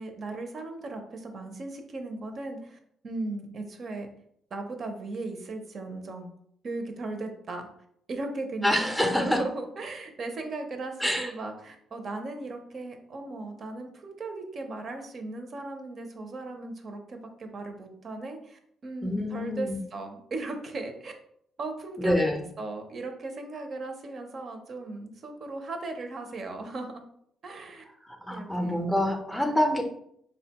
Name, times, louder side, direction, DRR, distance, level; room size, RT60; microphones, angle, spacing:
voice 1, 0.0-2.8 3.0-4.1 4.5-6.3 6.6-7.7 8.1-21.1 21.6-22.2 22.6-27.0 27.4-27.8 28.3-28.8, right 2 dB, 50° right, 5 dB, 0.5 m, -37 dB
voice 2, 8.6-9.4 11.0-11.3 19.0-19.8 22.0-22.4 28.0-29.8, left 1 dB, 5° left, 3 dB, 0.5 m, -26 dB
3.7 x 2.2 x 2.8 m, 0.70 s
cardioid pair, 90°, 0 cm